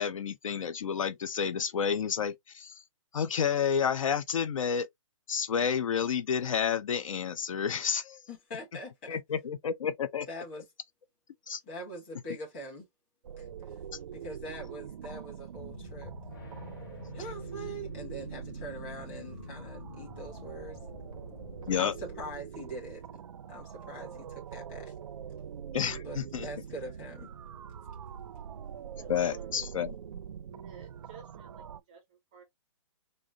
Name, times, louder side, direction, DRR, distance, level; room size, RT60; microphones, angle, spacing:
voice 1, 0.0-2.8 3.1-4.9 5.3-8.2 9.1-10.3 11.5-11.6 21.7-21.9 25.7-26.5 29.1-29.9, left 7 dB, 70° left, 0.5 m, -30 dB
voice 2, 8.3-9.2 10.3-10.6 11.6-12.8 13.4-13.5 14.1-16.1 17.1-20.8 21.7-23.2 23.5-24.9 26.0-27.3, right 1 dB, 20° left, 1.7 m, -43 dB
sound 1, 13.2-31.8, right 8 dB, 75° right, 0.4 m, -44 dB
sound 2, 15.5-23.3, left 4 dB, 40° left, 1.2 m, -47 dB
voice 3, 21.4-21.9 24.1-24.3 29.0-29.6 30.5-32.4, right 7 dB, 15° right, 0.5 m, -53 dB
3.8 x 2.0 x 3.6 m
hypercardioid pair, 175°, 17 cm